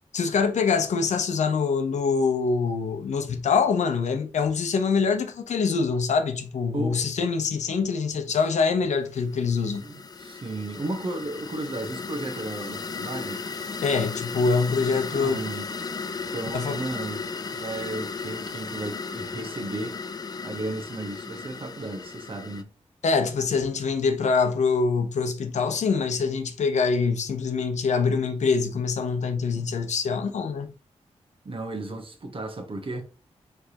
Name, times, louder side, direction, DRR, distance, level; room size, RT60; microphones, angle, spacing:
voice 1, 0.1-9.8 13.8-15.4 16.5-16.8 23.0-30.7, left 5 dB, 85° left, 0.7 m, -24 dB
voice 2, 6.7-7.1 8.3-8.4 9.8-13.4 15.1-15.7 16.3-20.0 20.4-22.7 31.4-33.0, right 2 dB, 50° right, 1.0 m, -34 dB
sound 1, 9.3-22.6, left 4 dB, 35° left, 0.4 m, -35 dB
4.5 x 3.3 x 2.8 m
cardioid pair, 60°, 12 cm